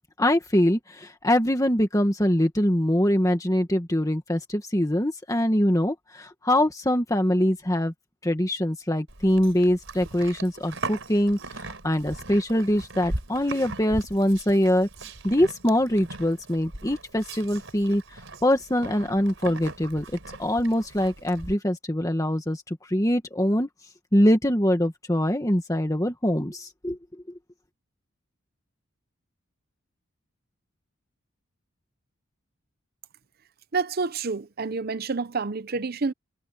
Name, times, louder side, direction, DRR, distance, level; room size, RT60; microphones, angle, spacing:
voice 1, 0.2-7.9 8.2-14.9 15.2-18.0 18.4-20.0 20.4-23.7 24.1-27.0, left 1 dB, 15° left, 1.7 m, -23 dB
Livestock farm animals working animals, 9.1-21.5, right 2 dB, 75° right, 4.2 m, -39 dB
voice 2, 33.7-36.1, right 4 dB, 50° right, 0.7 m, -28 dB
head